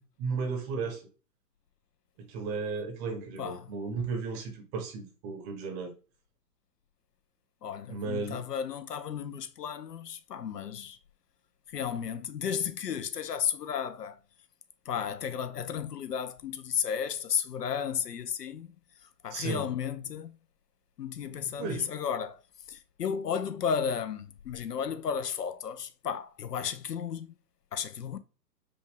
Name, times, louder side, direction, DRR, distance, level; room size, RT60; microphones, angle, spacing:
voice 1, 0.2-1.1 2.2-5.9 7.9-8.4 19.3-19.7 21.6-21.9, right 4 dB, 20° right, 0.8 m, -34 dB
voice 2, 3.4-3.7 7.6-11.0 11.7-14.2 14.9-18.7 19.2-20.4 21.0-22.4 22.7-27.4 27.7-28.2, left 7 dB, 70° left, 0.8 m, -33 dB
5.1 x 2.4 x 3.3 m
figure-of-eight pair, 125°, 49 cm